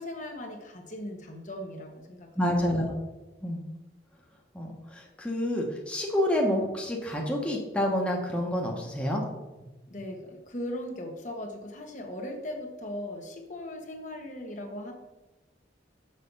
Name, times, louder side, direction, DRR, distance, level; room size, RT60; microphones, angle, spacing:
voice 1, 0.0-2.3 9.9-14.9, left 1 dB, 45° left, 2 dB, 1.2 m, -38 dB
voice 2, 2.3-2.9 3.4-3.7 4.5-9.2, left 1 dB, 5° left, -1 dB, 1.1 m, -28 dB
6.6 x 6.5 x 5.4 m, 1.1 s
head